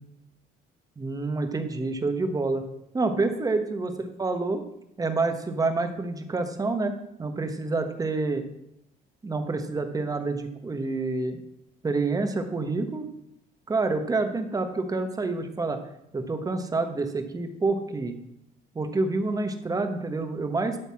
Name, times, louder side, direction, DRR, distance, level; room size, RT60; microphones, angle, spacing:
voice 1, 1.0-2.6 2.9-4.6 5.0-8.4 9.2-11.4 11.8-13.0 13.7-15.8 16.1-18.2 18.7-20.8, right 3 dB, 20° right, 7 dB, 1.3 m, -28 dB
12.0 x 4.1 x 7.5 m, 0.80 s
cardioid pair, 110°, 17 cm